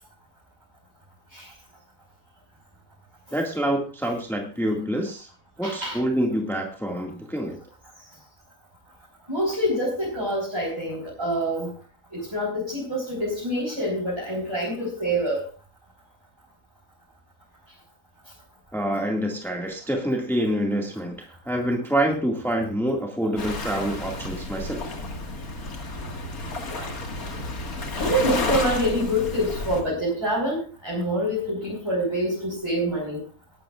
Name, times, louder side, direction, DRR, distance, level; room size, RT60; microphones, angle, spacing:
voice 1, 3.3-5.3 5.6-7.6 18.7-24.8, equal, ahead, 0 dB, 2.0 m, -26 dB
voice 2, 5.6-6.0 9.3-11.7 12.1-15.5 27.9-33.2, equal, 15° right, -4 dB, 4.8 m, -26 dB
Waves surf, 23.4-29.8, left 3 dB, 75° left, 2.5 m, -31 dB
19.5 x 12.5 x 2.5 m, 0.36 s
omnidirectional pair, 1.5 m